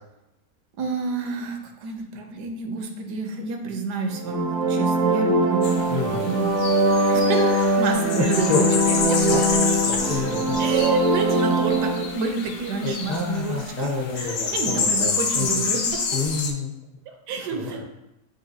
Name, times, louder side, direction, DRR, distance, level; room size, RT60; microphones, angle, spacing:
voice 1, 0.8-6.5 7.1-7.4 7.8-9.2 10.6-13.6 14.2-15.8 17.3-17.8, right 4 dB, 85° right, 4 dB, 1.2 m, -29 dB
sound 1, 4.1-12.0, right 1 dB, 65° right, 0.4 m, -22 dB
sound 2, 5.6-16.5, left 5 dB, 70° left, 0.8 m, -29 dB
voice 2, 5.9-6.2 8.1-8.7 9.3-9.4 9.8-10.6 12.8-15.6 16.1-16.7 17.5-17.8, left 3 dB, 40° left, -6 dB, 0.7 m, -28 dB
6.8 x 2.9 x 2.6 m, 0.89 s
omnidirectional pair, 1.7 m